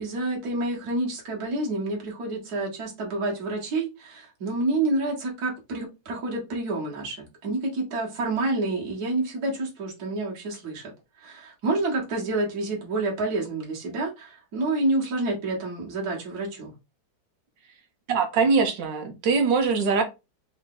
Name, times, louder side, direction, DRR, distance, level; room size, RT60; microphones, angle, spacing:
voice 1, 0.0-10.9 11.2-16.7, right 2 dB, 55° right, 2.0 m, -28 dB
voice 2, 18.1-20.0, right 5 dB, 70° right, 1.6 m, -22 dB
4.8 x 2.7 x 3.8 m
omnidirectional pair, 2.1 m